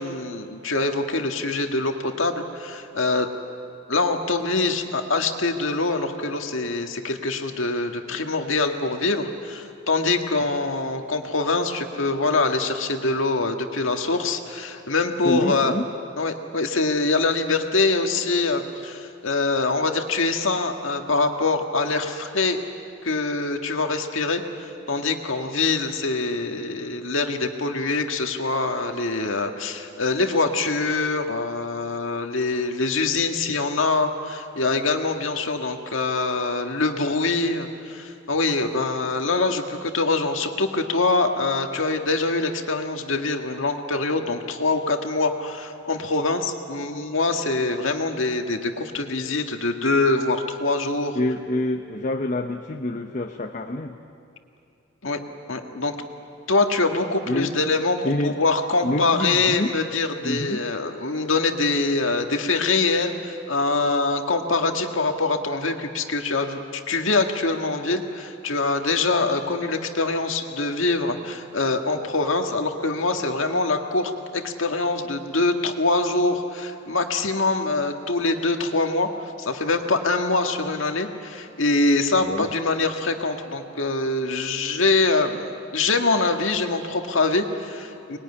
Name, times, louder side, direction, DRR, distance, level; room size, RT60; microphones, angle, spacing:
voice 1, 0.0-3.3 3.9-15.7 16.2-22.6 23.0-51.2 55.0-55.2 55.5-56.0 56.5-88.2, left 3 dB, 85° left, 4 dB, 1.8 m, -24 dB
voice 2, 15.2-15.8 51.1-54.0 57.3-57.5 58.0-58.3 58.8-59.7 60.2-60.6 82.2-82.5, left 1 dB, 40° left, 4 dB, 0.9 m, -27 dB
24.5 x 20.5 x 9.9 m, 2.6 s
head